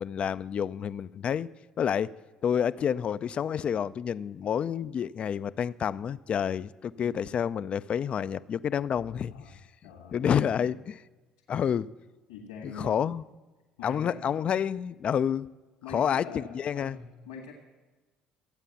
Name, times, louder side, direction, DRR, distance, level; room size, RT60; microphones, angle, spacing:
voice 1, 0.0-1.5 1.8-2.1 2.4-9.4 10.1-11.0 11.5-11.9 12.6-13.2 13.8-15.5 15.9-17.0, left 8 dB, 45° left, 0.4 m, -29 dB
voice 2, 7.0-7.4 9.2-9.5 9.8-10.8 12.3-13.1 13.8-14.4 15.8-17.5, left 5 dB, 85° left, 1.7 m, -44 dB
13.5 x 9.0 x 7.0 m
hypercardioid pair, 60°, 3 cm